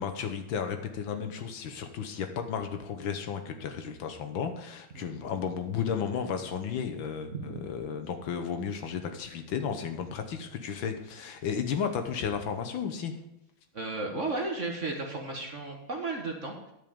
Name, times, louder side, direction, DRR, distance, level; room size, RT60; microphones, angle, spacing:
voice 1, 0.0-13.2, left 7 dB, 65° left, 7 dB, 1.6 m, -33 dB
voice 2, 13.7-16.7, right 3 dB, 40° right, 2 dB, 1.3 m, -34 dB
11.0 x 5.2 x 8.6 m, 0.86 s
omnidirectional pair, 2.4 m